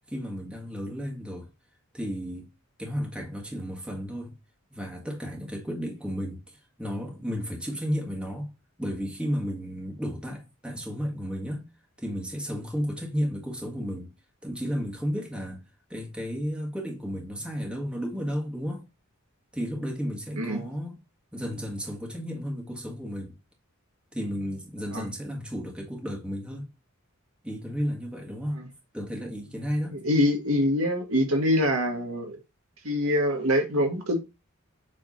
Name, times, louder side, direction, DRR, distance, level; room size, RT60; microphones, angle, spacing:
voice 1, 0.1-1.5 1.9-2.5 2.8-4.3 4.7-6.4 6.8-8.5 8.8-11.7 12.0-14.1 14.4-15.6 15.9-18.8 19.5-21.0 21.3-23.3 24.1-26.7 27.4-28.6 28.9-30.0, equal, 5° right, 1.6 m, -33 dB
voice 2, 29.9-32.4 32.8-34.2, left 1 dB, 80° right, 1.6 m, -25 dB
7.4 x 3.4 x 4.1 m
head